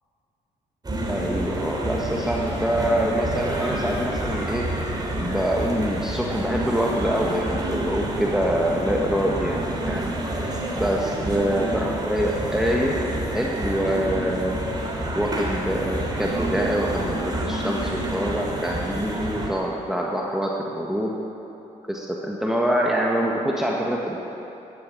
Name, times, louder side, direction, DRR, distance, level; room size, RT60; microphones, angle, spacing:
sound 1, 0.8-19.5, right 1 dB, 25° right, 3.3 m, -28 dB
voice 1, 1.1-4.7 5.2-10.1 10.8-12.9 13.2-14.6 15.1-21.1 21.8-24.3, equal, 5° right, -2 dB, 1.5 m, -25 dB
14.5 x 8.7 x 8.7 m, 3.0 s
cardioid pair, 80°, 15 cm